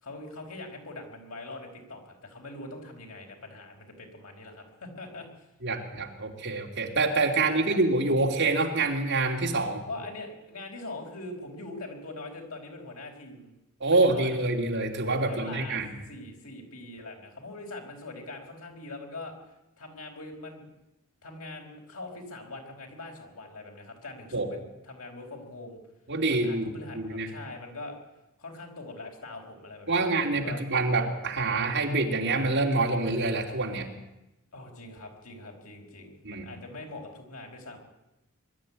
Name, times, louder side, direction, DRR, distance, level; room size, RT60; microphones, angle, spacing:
voice 1, 0.0-5.5 7.4-7.8 9.9-13.5 13.9-14.4 15.3-19.3 19.8-20.7 21.2-24.6 24.8-25.8 26.3-28.0 28.4-30.6 34.5-37.8, left 2 dB, 75° left, 1 dB, 4.9 m, -42 dB
voice 2, 5.6-9.8 13.8-16.0 24.3-24.5 26.1-27.3 29.9-33.9 36.2-36.5, right 3 dB, 55° right, 1 dB, 3.0 m, -26 dB
22.0 x 12.5 x 9.8 m, 0.95 s
head